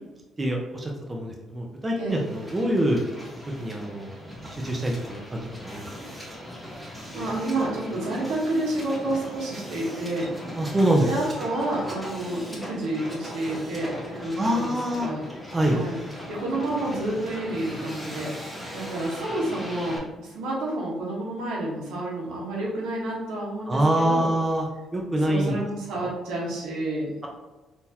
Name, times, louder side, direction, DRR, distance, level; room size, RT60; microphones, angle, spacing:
voice 1, 0.4-3.0 3.6-4.1 4.5-6.2 10.6-11.1 14.4-15.1 15.5-15.8 23.7-24.7 24.9-25.6 25.9-26.1, right 1 dB, 25° right, 0 dB, 0.7 m, -25 dB
Hiss, 2.1-20.0, equal, ahead, 1.0 m, -39 dB
voice 2, 6.7-10.4 11.0-14.8 15.0-15.2 15.7-16.0 16.3-24.3 25.2-27.1, right 1 dB, 85° right, -5 dB, 1.2 m, -29 dB
3.7 x 2.8 x 2.8 m, 1.2 s
supercardioid pair, 75°, 0 cm